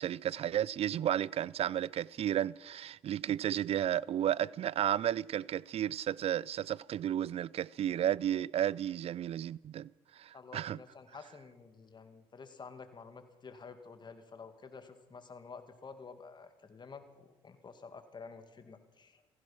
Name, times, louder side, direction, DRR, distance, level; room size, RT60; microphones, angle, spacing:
voice 1, 0.0-9.9 10.2-10.8, right 11 dB, 55° right, 0.4 m, -33 dB
voice 2, 10.3-19.2, left 5 dB, 40° left, 2.1 m, -50 dB
16.0 x 15.5 x 5.9 m
supercardioid pair, 70°, 12 cm